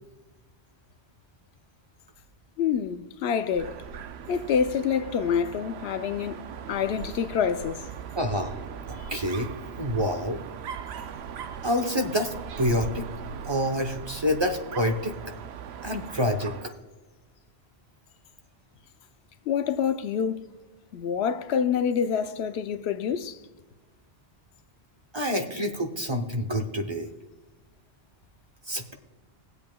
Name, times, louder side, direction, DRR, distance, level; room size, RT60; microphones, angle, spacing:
voice 1, 2.6-3.8 4.3-7.8 19.5-20.5 20.9-23.4, left 7 dB, 85° left, 0.9 m, -27 dB
Dog, 3.5-16.8, right 7 dB, 90° right, 0.8 m, -39 dB
voice 2, 8.2-8.5 8.9-9.5 9.8-10.4 11.6-15.2 15.8-16.7 25.1-27.1 28.7-28.9, equal, 30° right, 0.8 m, -27 dB
20.5 x 8.0 x 2.2 m
omnidirectional pair, 1.0 m